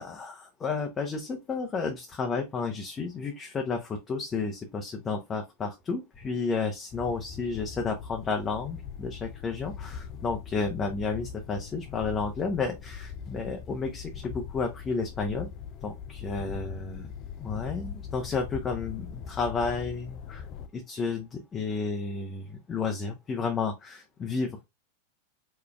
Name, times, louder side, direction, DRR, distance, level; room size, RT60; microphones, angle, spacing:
voice 1, 0.0-15.5 15.8-17.1 17.4-20.5 20.7-24.7, left 4 dB, 20° left, 0.8 m, -32 dB
sound 1, 6.9-20.7, left 7 dB, 40° left, 0.4 m, -41 dB
5.1 x 3.5 x 2.3 m
figure-of-eight pair, 90°, 0 cm